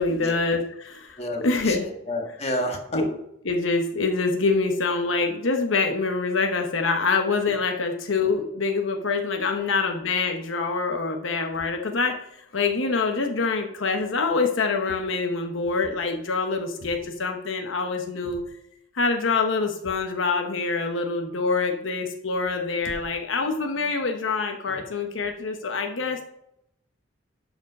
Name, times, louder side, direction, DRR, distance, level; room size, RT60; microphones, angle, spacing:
voice 1, 0.0-1.8 2.9-3.2 3.4-18.4 18.9-26.3, left 4 dB, 85° left, 4 dB, 1.0 m, -25 dB
voice 2, 1.2-3.0, left 1 dB, 35° left, 2 dB, 1.6 m, -30 dB
11.5 x 5.1 x 5.3 m, 0.79 s
head